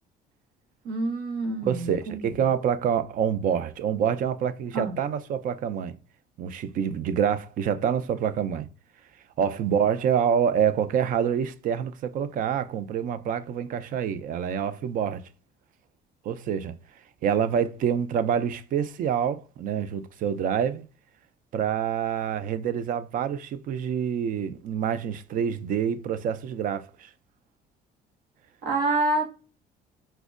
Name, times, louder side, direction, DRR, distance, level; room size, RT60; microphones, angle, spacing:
voice 1, 0.8-2.2 4.7-5.0 28.6-29.3, right 2 dB, 75° right, 1.0 m, -27 dB
voice 2, 1.6-5.9 6.4-8.7 9.4-15.2 16.2-16.7 17.2-20.8 21.5-27.1, right 8 dB, 55° right, 0.4 m, -26 dB
4.3 x 2.1 x 2.4 m
cardioid pair, 110°, 17 cm